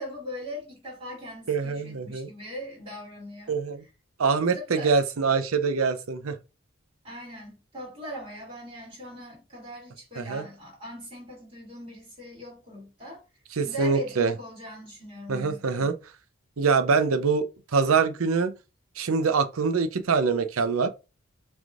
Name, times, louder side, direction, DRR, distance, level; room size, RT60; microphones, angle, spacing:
voice 1, 0.0-3.6 4.5-5.0 7.0-13.2 13.6-15.9, equal, 30° right, 3.1 m, -40 dB
voice 2, 1.5-2.3 3.5-3.8 4.2-6.4 10.2-10.4 13.6-14.3 15.3-15.9 16.6-18.5 19.0-20.9, right 5 dB, 90° right, 0.6 m, -24 dB
6.1 x 3.5 x 2.5 m
head